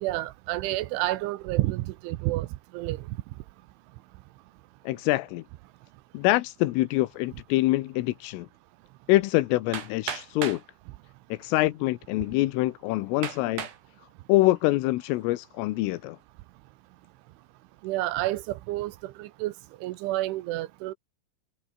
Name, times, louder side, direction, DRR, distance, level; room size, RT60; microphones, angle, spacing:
voice 1, 0.0-2.5 2.7-3.0 17.8-19.5 19.8-20.9, right 17 dB, 80° right, 3.1 m, -29 dB
voice 2, 4.9-5.4 6.2-8.5 9.1-10.6 11.3-13.7 14.3-16.2, left 18 dB, 85° left, 3.5 m, -25 dB
Hammer, 9.7-10.7 11.6-11.7 12.3-12.4 13.2-13.8 14.4-14.8, right 8 dB, 60° right, 4.9 m, -36 dB
omnidirectional pair, 5.9 m